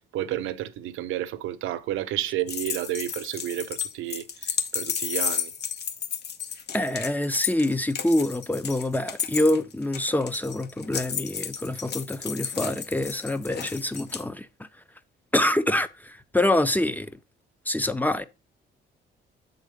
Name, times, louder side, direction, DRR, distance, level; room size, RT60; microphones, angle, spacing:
voice 1, 0.1-5.5 15.4-15.5, right 13 dB, 85° right, 0.7 m, -31 dB
sound 1, 2.5-14.2, left 7 dB, 55° left, 1.1 m, -32 dB
voice 2, 6.7-14.5 15.3-17.1 17.7-18.2, left 1 dB, 10° left, 0.6 m, -26 dB
7.2 x 3.9 x 5.1 m
cardioid pair, 90°, 20 cm